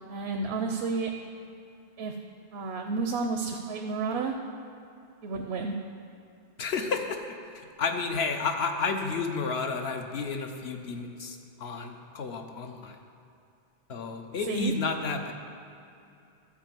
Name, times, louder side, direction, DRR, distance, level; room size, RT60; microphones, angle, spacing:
voice 1, 0.1-1.1 2.0-2.2 2.5-4.3 5.2-5.7 14.5-14.7, right 4 dB, 85° right, 4 dB, 0.9 m, -31 dB
voice 2, 6.6-13.0 13.9-15.3, left 4 dB, 80° left, 5 dB, 1.1 m, -31 dB
12.5 x 5.0 x 7.6 m, 2.6 s
omnidirectional pair, 1.0 m